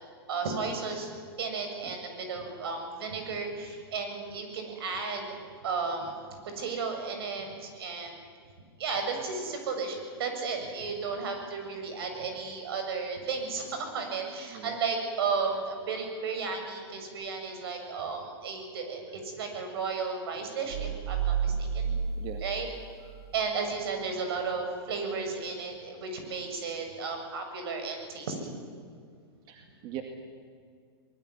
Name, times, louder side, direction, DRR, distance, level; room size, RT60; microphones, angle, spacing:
voice 1, 0.3-1.1 1.4-5.2 5.6-8.2 8.8-13.7 13.9-22.0 22.4-22.7 23.3-28.4, right 4 dB, 65° right, 5 dB, 7.6 m, -34 dB
voice 2, 14.4-14.8 22.2-22.5 23.0-23.3 29.5-30.0, right 11 dB, 35° right, 4 dB, 2.3 m, -42 dB
sound 1, 20.7-23.5, right 7 dB, 85° right, 1.8 m, -31 dB
23.5 x 20.5 x 9.8 m, 2.1 s
hypercardioid pair, 130°, 13 cm